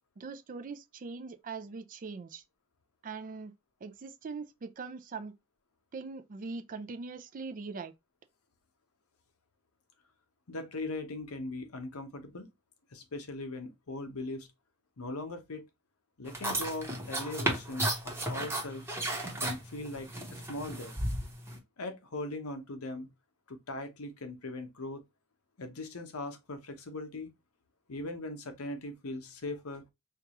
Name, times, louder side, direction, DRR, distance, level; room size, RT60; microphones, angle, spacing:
voice 1, 0.2-2.4 3.0-3.5 3.8-5.3 5.9-7.9, right 4 dB, 40° right, 0.4 m, -41 dB
voice 2, 10.5-12.5 12.9-14.5 15.0-15.7 16.2-18.9 19.4-20.9 21.8-23.1 23.5-25.0 25.6-27.3 27.9-29.8, left 2 dB, 80° left, 0.8 m, -40 dB
sound 1, 16.3-21.6, right 1 dB, 10° right, 1.0 m, -34 dB
4.5 x 2.4 x 2.9 m
head